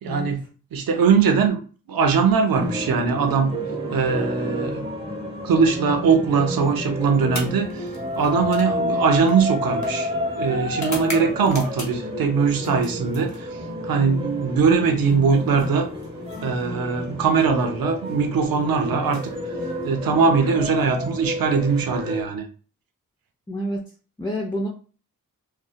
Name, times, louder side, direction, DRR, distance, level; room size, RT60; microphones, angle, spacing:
voice 1, 0.0-0.4 0.7-1.6 1.9-3.5 3.9-4.8 5.4-7.9 8.2-13.5 13.8-15.9 16.4-19.3 19.8-22.5, right 5 dB, 75° right, 5 dB, 0.5 m, -21 dB
sound 1, 2.5-22.2, left 1 dB, 15° right, 0.9 m, -30 dB
sound 2, 7.2-12.2 12.6-13.8 15.0-16.8 17.9-18.2 19.0-20.1, left 2 dB, 50° left, 0.8 m, -40 dB
voice 2, 23.5-23.8 24.2-24.7, equal, 10° left, -1 dB, 0.5 m, -28 dB
2.6 x 2.0 x 2.4 m, 0.37 s
cardioid pair, 40°, 36 cm